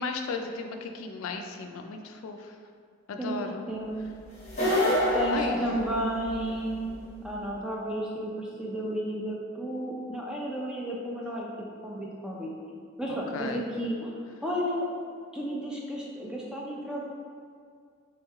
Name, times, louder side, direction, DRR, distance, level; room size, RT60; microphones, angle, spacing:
voice 1, 0.0-2.6 3.1-3.7 5.3-5.7 13.3-13.6, left 4 dB, 80° left, 4 dB, 0.3 m, -35 dB
sound 1, 4.4-6.5, left 1 dB, 35° left, 1.0 m, -26 dB
voice 2, 5.1-11.5 11.8-12.5 13.0-14.1 14.4-14.9 15.3-17.2, equal, 5° right, -3 dB, 0.4 m, -32 dB
3.2 x 3.1 x 3.5 m, 2.1 s
head